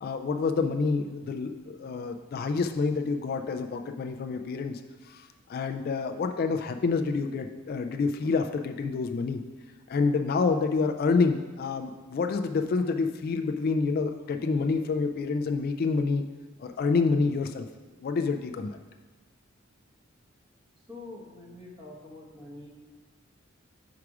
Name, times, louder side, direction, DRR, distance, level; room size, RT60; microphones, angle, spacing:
voice 1, 0.0-9.4 9.9-16.2 16.6-17.7 18.0-18.8, left 4 dB, 50° left, 6 dB, 0.3 m, -28 dB
voice 2, 20.9-22.7, left 2 dB, 25° right, -3 dB, 1.2 m, -45 dB
4.8 x 4.8 x 5.9 m, 1.3 s
head